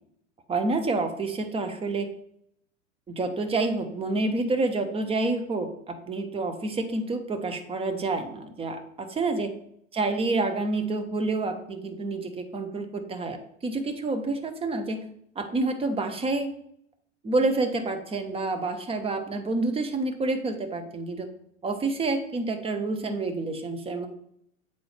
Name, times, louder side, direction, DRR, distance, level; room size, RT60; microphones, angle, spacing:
voice 1, 0.5-2.1 3.1-9.5 9.9-13.4 13.6-15.0 15.4-16.5 17.2-21.3 21.6-24.1, right 3 dB, 15° right, 6 dB, 0.7 m, -28 dB
7.8 x 4.2 x 3.2 m, 0.72 s
figure-of-eight pair, 90°, 39 cm